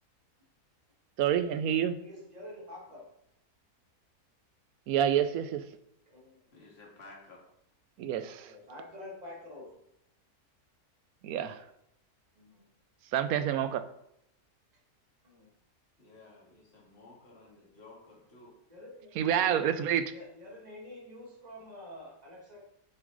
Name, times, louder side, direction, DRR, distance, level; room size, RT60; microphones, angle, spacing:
voice 1, 1.2-2.0 4.9-5.6 8.0-8.5 11.2-11.6 13.1-13.8 19.2-20.1, right 9 dB, 75° right, 11 dB, 1.0 m, -28 dB
voice 2, 2.0-3.1 6.1-6.4 8.5-9.8 12.4-12.7 15.2-15.5 18.7-19.4 20.1-22.6, left 1 dB, 25° right, -1 dB, 1.7 m, -48 dB
voice 3, 6.5-7.4 16.0-18.5, left 3 dB, 45° left, -3 dB, 2.2 m, -54 dB
7.4 x 6.2 x 3.9 m, 0.79 s
omnidirectional pair, 1.6 m